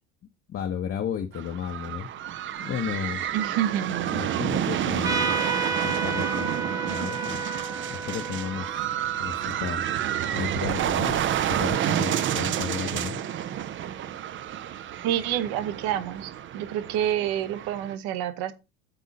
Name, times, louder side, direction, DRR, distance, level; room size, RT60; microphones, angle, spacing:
voice 1, 0.5-2.1 2.6-3.2 4.1-5.3 5.8-7.4 7.9-8.8 9.1-9.8 10.3-13.2, left 8 dB, 30° left, 0.9 m, -33 dB
sound 1, 1.3-17.9, right 10 dB, 30° right, 0.6 m, -29 dB
voice 2, 3.3-4.1 15.0-18.5, right 11 dB, 55° right, 1.2 m, -28 dB
Trumpet, 5.0-10.1, right 4 dB, 10° right, 1.1 m, -31 dB
8.5 x 3.7 x 5.1 m
hypercardioid pair, 75°, 42 cm